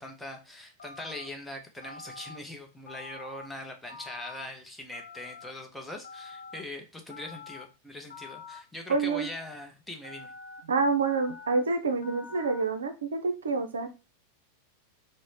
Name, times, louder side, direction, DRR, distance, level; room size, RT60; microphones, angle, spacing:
voice 1, 0.0-10.3, left 1 dB, 5° left, 2 dB, 0.7 m, -42 dB
Telephone, 0.8-1.3 1.8-2.4 2.9-3.5 3.9-4.5 4.9-5.5 6.0-6.6 7.1-7.6 8.1-8.6 9.1-9.6 10.0-10.6 11.0-11.6 12.0-12.6, left 4 dB, 70° left, 0.5 m, -46 dB
voice 2, 8.9-9.3 10.7-13.9, right 4 dB, 70° right, 7 dB, 0.4 m, -27 dB
3.8 x 2.0 x 3.1 m, 0.29 s
figure-of-eight pair, 90°, 0 cm